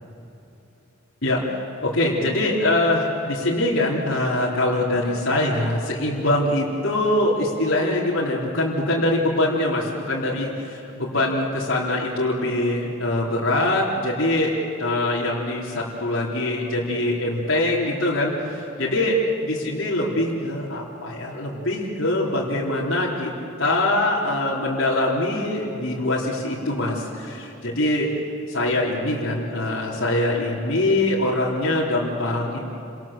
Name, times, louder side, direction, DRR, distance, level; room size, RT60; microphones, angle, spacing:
voice 1, 1.2-19.2 19.4-23.3 23.6-28.1 28.5-32.6, left 1 dB, 70° left, -6 dB, 3.8 m, -23 dB
30.0 x 26.5 x 7.5 m, 2.8 s
head